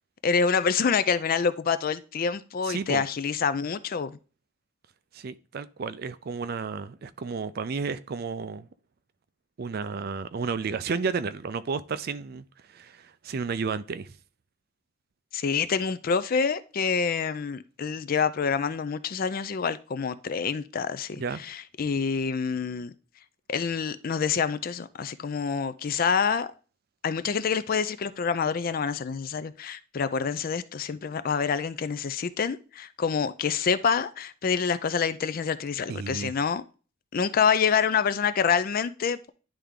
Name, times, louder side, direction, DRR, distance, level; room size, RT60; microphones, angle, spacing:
voice 1, 0.2-4.2 15.3-22.9 23.5-26.5 27.0-36.6 37.1-39.3, left 6 dB, 45° left, 0.4 m, -27 dB
voice 2, 2.6-3.0 5.1-8.7 9.6-14.2 21.2-21.4 35.9-36.3, right 5 dB, 50° right, 0.4 m, -32 dB
10.0 x 3.4 x 3.6 m
head